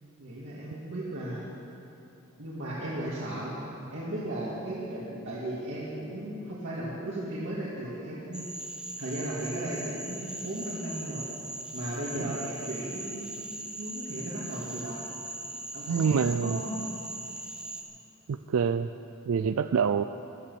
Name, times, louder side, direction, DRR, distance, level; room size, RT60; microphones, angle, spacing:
voice 1, 0.2-1.5 2.4-3.6 3.9-8.5 9.0-11.3 11.7-15.0 15.7-16.9, right 1 dB, 60° right, -7 dB, 2.1 m, -36 dB
Cricket / Frog, 8.3-17.8, right 2 dB, 5° right, 1.0 m, -40 dB
voice 2, 15.9-16.6 18.3-18.9 19.3-20.0, right 6 dB, 80° right, 11 dB, 0.4 m, -26 dB
14.5 x 11.5 x 6.9 m, 2.7 s
head